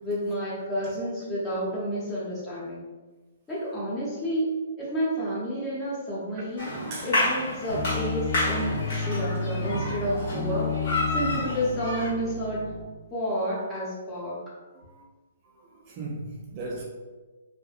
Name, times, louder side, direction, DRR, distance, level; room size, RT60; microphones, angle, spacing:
voice 1, 0.0-2.8 3.5-4.5 4.8-6.7 7.0-10.8 11.1-12.7 13.1-14.5, equal, 10° left, -7 dB, 0.7 m, -30 dB
sound 1, 6.6-12.1, left 1 dB, 45° left, 1.0 m, -30 dB
sound 2, 7.7-12.8, left 3 dB, 85° left, 0.6 m, -31 dB
voice 2, 15.4-16.8, right 2 dB, 30° right, -2 dB, 0.3 m, -38 dB
2.6 x 2.0 x 2.4 m, 1.3 s
hypercardioid pair, 165°, 0 cm